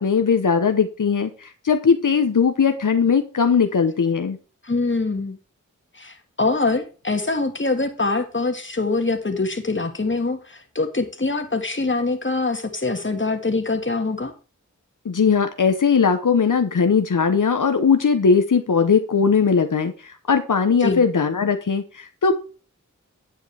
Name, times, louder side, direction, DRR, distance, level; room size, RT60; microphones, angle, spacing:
voice 1, 0.0-4.4 15.0-22.4, left 5 dB, 75° left, 7 dB, 1.0 m, -19 dB
voice 2, 4.6-5.4 5.9-14.3 20.8-21.0, left 3 dB, 40° left, 6 dB, 1.9 m, -24 dB
10.0 x 8.9 x 3.4 m, 0.35 s
wide cardioid pair, 45°, 31 cm